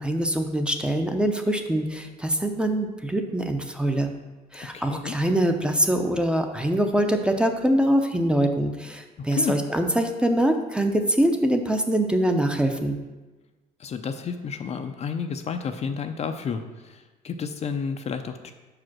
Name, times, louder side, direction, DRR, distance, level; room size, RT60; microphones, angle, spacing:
voice 1, 0.0-4.1 4.5-13.0, right 1 dB, 5° right, 5 dB, 0.6 m, -24 dB
voice 2, 4.6-5.2 9.2-9.5 13.8-18.5, left 6 dB, 40° left, 7 dB, 0.5 m, -31 dB
5.5 x 4.9 x 6.0 m, 1.2 s
cardioid pair, 110°, 17 cm